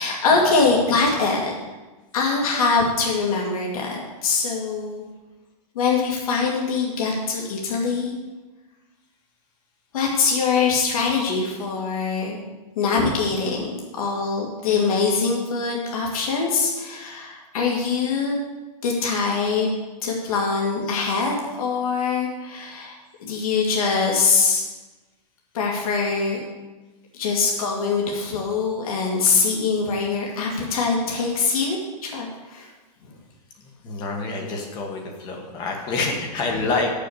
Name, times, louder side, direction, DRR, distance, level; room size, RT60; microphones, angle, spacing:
voice 1, 0.0-1.5 2.1-5.0 5.7-8.1 9.9-12.4 12.8-18.4 18.8-19.7 20.0-24.6 25.5-26.4 27.2-32.7 36.5-36.6, left 4 dB, 60° left, -2 dB, 2.2 m, -23 dB
voice 2, 33.6-36.9, left 3 dB, 20° left, 2 dB, 1.3 m, -27 dB
6.9 x 6.7 x 7.9 m, 1.2 s
supercardioid pair, 170°, 21 cm